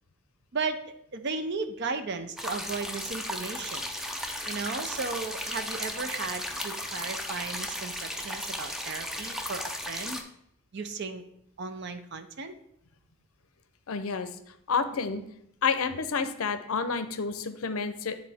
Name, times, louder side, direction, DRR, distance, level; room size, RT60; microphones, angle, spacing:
voice 1, 1.1-3.9 4.5-10.2 10.7-11.2 11.6-12.5, right 4 dB, 50° right, 9 dB, 0.6 m, -35 dB
sound 1, 2.4-10.2, left 1 dB, ahead, 0.4 m, -35 dB
voice 2, 13.9-14.3 14.7-15.2 15.6-18.2, left 5 dB, 70° left, 10 dB, 0.6 m, -29 dB
9.8 x 3.9 x 3.4 m, 0.74 s
head